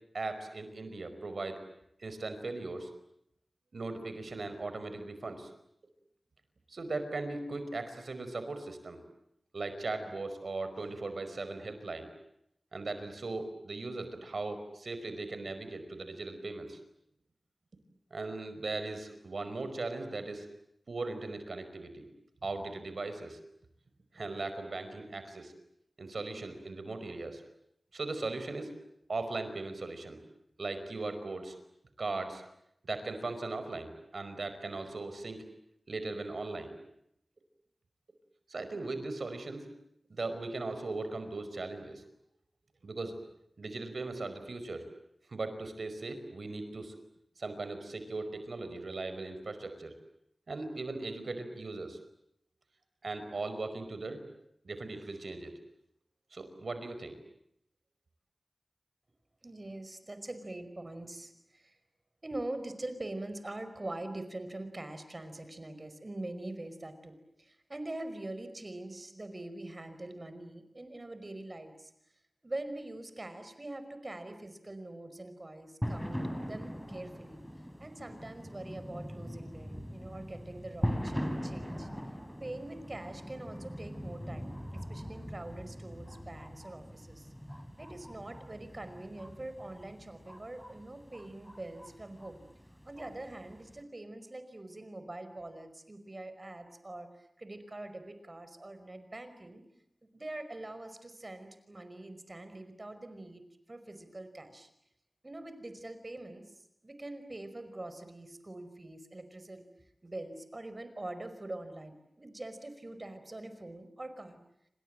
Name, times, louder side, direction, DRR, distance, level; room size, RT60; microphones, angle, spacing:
voice 1, 0.1-1.6 2.0-2.9 3.7-5.5 6.7-9.0 9.5-12.1 12.7-16.8 18.1-20.5 20.9-22.1 22.4-23.4 24.1-25.5 26.0-27.4 27.9-28.7 29.1-30.2 30.6-31.5 32.0-32.4 32.8-35.4 35.9-36.7 38.5-39.7 40.1-42.0 42.8-43.1 43.6-44.8 45.3-46.9 47.4-49.9 50.5-52.0 53.0-54.2 54.6-55.5 56.3-57.2, right 3 dB, 80° right, 9 dB, 5.0 m, -38 dB
voice 2, 59.4-61.8 62.2-71.9 72.4-77.4 77.8-81.9 82.4-87.3 87.8-92.4 92.9-99.6 100.1-103.4 103.7-104.7 105.2-109.6 110.0-114.4, right 2 dB, 40° right, 10 dB, 5.2 m, -44 dB
sound 1, 75.8-93.8, equal, 5° left, 4.7 m, -41 dB
29.0 x 26.5 x 7.7 m, 0.76 s
cardioid pair, 45°, 0 cm